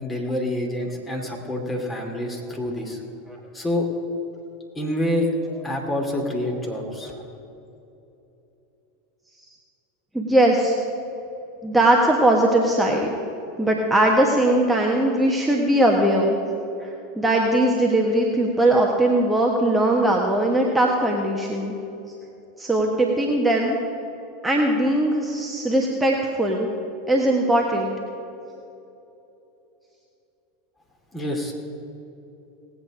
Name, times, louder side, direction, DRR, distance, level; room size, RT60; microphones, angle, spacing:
voice 1, 0.0-3.0 3.5-3.9 4.7-5.3 5.6-7.2 31.1-31.5, left 1 dB, 15° left, 1 dB, 2.7 m, -27 dB
voice 2, 10.1-10.8 11.6-13.1 13.6-16.4 16.8-21.7 22.6-23.8 24.4-26.7 27.1-27.9, right 1 dB, 10° right, -1 dB, 1.4 m, -20 dB
18.5 x 8.5 x 5.1 m, 2.9 s
figure-of-eight pair, 85°, 0 cm